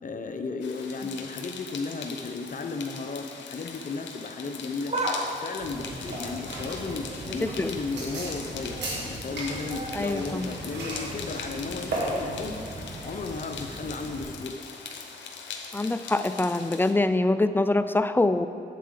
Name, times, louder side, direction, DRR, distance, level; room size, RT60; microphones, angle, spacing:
voice 1, 0.0-12.7 13.0-14.5, left 4 dB, 45° left, 6 dB, 0.8 m, -35 dB
sound 1, 0.6-16.9, left 5 dB, 85° left, 0.7 m, -41 dB
sound 2, 4.7-7.5 7.9-8.3 8.6-12.6 12.9-13.0 14.0-14.1, right 1 dB, 35° right, 1.3 m, -38 dB
sound 3, 5.6-14.2, right 1 dB, 75° right, 1.8 m, -36 dB
voice 2, 9.9-10.5 15.7-18.5, left 2 dB, 10° left, 12 dB, 0.3 m, -24 dB
8.3 x 7.5 x 3.8 m, 2.4 s
cardioid pair, 55°, 18 cm